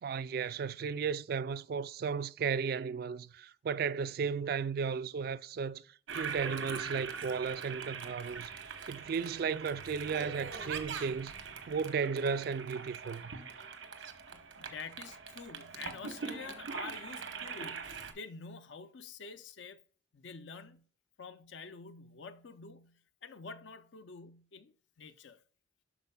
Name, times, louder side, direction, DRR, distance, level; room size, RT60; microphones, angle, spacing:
voice 1, 0.0-5.8 6.1-13.3, right 6 dB, 50° right, 0.3 m, -35 dB
Toilet flush, 6.1-18.1, right 5 dB, 80° right, 1.0 m, -42 dB
voice 2, 14.3-19.8 20.1-20.9 21.2-25.4, left 5 dB, 70° left, 0.5 m, -48 dB
12.0 x 4.4 x 2.3 m
head